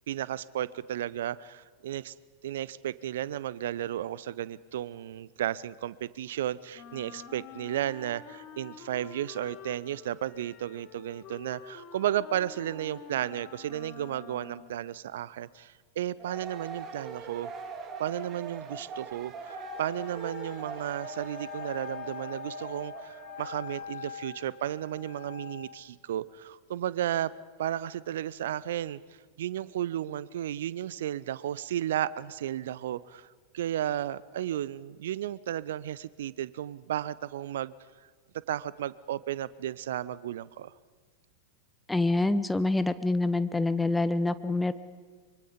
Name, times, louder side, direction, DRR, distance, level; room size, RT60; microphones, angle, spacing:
voice 1, 0.1-2.1 2.4-17.5 18.0-19.3 19.8-27.3 27.6-29.0 29.4-33.3 33.5-37.7 38.5-40.7, right 11 dB, 60° right, 20 dB, 0.6 m, -33 dB
Wind instrument woodwind instrument, 6.7-14.9, left 7 dB, 35° left, 1.7 m, -48 dB
sound 1, 16.2-23.9, right 5 dB, 30° right, 2.0 m, -42 dB
Wind instrument woodwind instrument 2, 19.4-25.6, left 7 dB, 75° left, 6.7 m, -43 dB
voice 2, 41.9-44.7, left 2 dB, 5° left, 13 dB, 0.9 m, -26 dB
24.5 x 24.0 x 5.2 m, 1.5 s
figure-of-eight pair, 90°, 0 cm